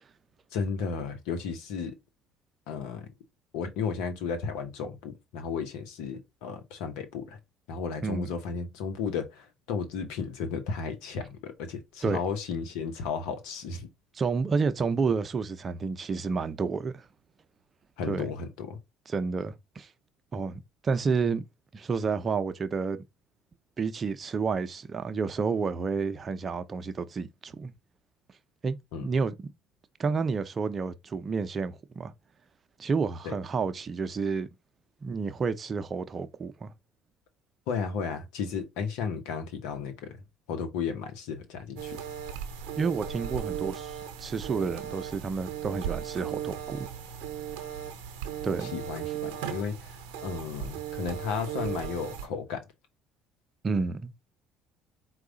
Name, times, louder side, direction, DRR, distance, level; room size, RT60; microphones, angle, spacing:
voice 1, 0.5-2.0 2.7-3.1 3.5-7.4 7.7-13.9 18.0-18.8 28.9-29.1 33.2-33.3 37.7-40.2 40.5-42.1 48.6-52.6, left 6 dB, 75° left, 0.9 m, -34 dB
voice 2, 14.1-17.1 18.1-18.3 19.1-19.9 20.3-21.4 21.7-23.0 23.8-27.7 28.6-29.5 30.0-32.1 32.8-34.5 35.0-36.7 42.8-46.9 48.4-48.7 53.6-54.2, right 5 dB, 35° right, 0.6 m, -30 dB
sound 1, 41.8-52.3, right 9 dB, 80° right, 0.8 m, -37 dB
4.6 x 2.4 x 3.9 m
hypercardioid pair, 65°, 0 cm